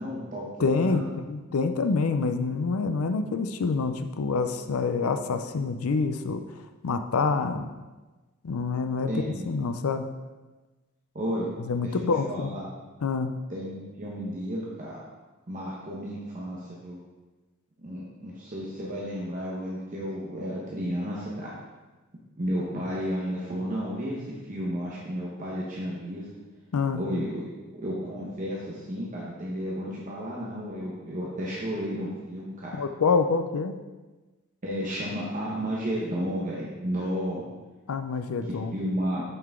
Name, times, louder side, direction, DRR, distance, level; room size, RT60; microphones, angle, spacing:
voice 1, 0.0-1.1 9.1-9.5 11.1-11.5 11.8-12.7 13.5-15.0 15.5-17.0 17.8-21.5 22.4-26.2 26.9-32.8 34.6-37.4 38.4-39.2, equal, 35° right, -5 dB, 1.1 m, -32 dB
voice 2, 0.6-6.4 6.8-7.7 8.4-10.1 11.7-12.6 13.0-13.4 26.7-27.0 32.8-33.8 37.9-38.7, left 4 dB, 85° left, 8 dB, 0.5 m, -27 dB
7.7 x 5.7 x 3.7 m, 1.2 s
head